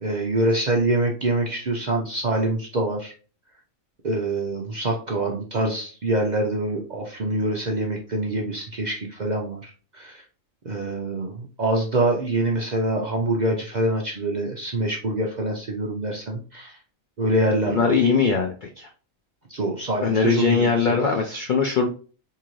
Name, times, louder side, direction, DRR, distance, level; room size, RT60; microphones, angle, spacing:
voice 1, 0.0-3.1 4.0-10.2 10.6-16.8 17.2-17.9 19.5-21.0, right 2 dB, 55° right, 0 dB, 0.5 m, -25 dB
voice 2, 17.7-18.9 20.0-21.9, left 5 dB, 65° left, 2 dB, 0.4 m, -21 dB
3.8 x 2.7 x 3.0 m, 0.38 s
omnidirectional pair, 1.4 m